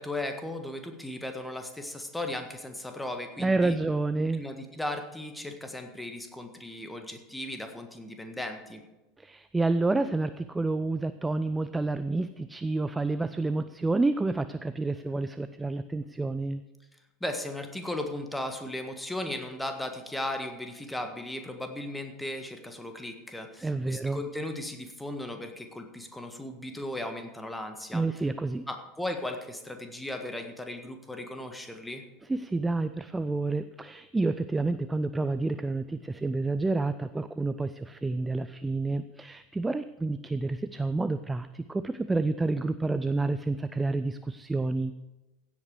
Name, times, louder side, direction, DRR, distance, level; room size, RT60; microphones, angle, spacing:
voice 1, 0.0-3.8 4.4-8.8 17.2-28.0 28.7-32.0, left 1 dB, 5° left, 6 dB, 1.6 m, -36 dB
voice 2, 3.4-4.4 9.2-16.6 23.6-24.2 27.9-28.6 32.3-44.9, right 3 dB, 10° right, 12 dB, 0.4 m, -29 dB
16.0 x 8.4 x 4.8 m, 1.1 s
figure-of-eight pair, 80°, 0 cm